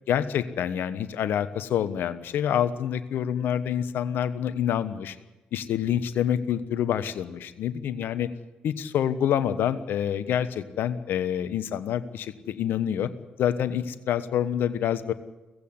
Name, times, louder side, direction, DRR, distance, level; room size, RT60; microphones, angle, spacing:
voice 1, 0.1-5.1 5.5-8.3 8.6-13.1 13.4-15.1, left 9 dB, 65° left, 13 dB, 1.2 m, -27 dB
17.5 x 15.5 x 9.8 m, 1.1 s
hypercardioid pair, 45°, 4 cm